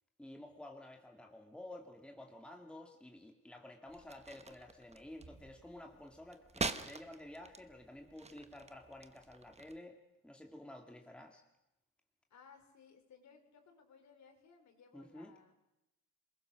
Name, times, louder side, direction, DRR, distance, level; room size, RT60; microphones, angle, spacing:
voice 1, 0.2-10.0 10.2-11.4 14.9-15.3, left 1 dB, 5° left, 2 dB, 2.3 m, -52 dB
sound 1, 3.9-9.8, right 4 dB, 20° right, 1.3 m, -45 dB
voice 2, 12.3-15.5, left 6 dB, 55° left, 5 dB, 4.6 m, -61 dB
28.0 x 21.5 x 6.5 m, 0.90 s
cardioid pair, 130°, 33 cm